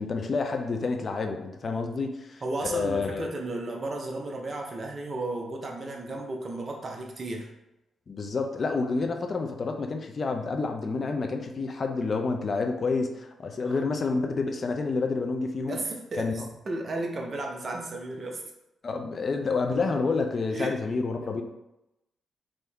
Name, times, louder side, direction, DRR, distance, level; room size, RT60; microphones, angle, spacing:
voice 1, 0.0-3.3 8.1-15.8 16.1-16.3 18.8-21.4, left 4 dB, 45° left, 5 dB, 0.5 m, -29 dB
voice 2, 2.4-7.5 13.6-13.8 15.7-16.3 16.7-18.4 20.5-20.8, right 2 dB, 40° right, 0 dB, 0.6 m, -34 dB
3.6 x 2.6 x 3.4 m, 0.90 s
cardioid pair, 75°, 0 cm